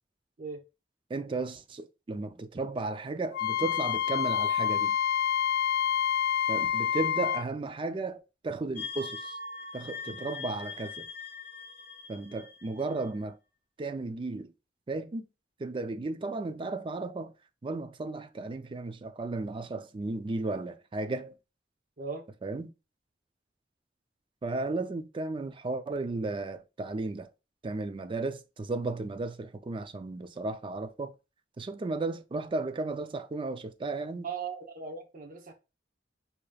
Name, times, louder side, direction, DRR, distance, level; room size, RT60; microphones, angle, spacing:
voice 1, 1.1-5.0 6.5-9.4 9.7-11.1 12.1-13.4 13.8-14.5 14.9-15.3 15.6-17.3 17.6-21.4 22.4-22.7 24.4-27.3 27.6-31.1 31.6-34.3, right 3 dB, 30° right, 0.4 m, -34 dB
Wind instrument woodwind instrument, 3.3-7.4, left 9 dB, 55° left, 0.3 m, -27 dB
sound 1, 8.8-13.2, left 4 dB, 10° left, 2.0 m, -42 dB
voice 2, 34.2-35.5, right 5 dB, 50° right, 0.7 m, -38 dB
4.7 x 2.8 x 2.3 m
head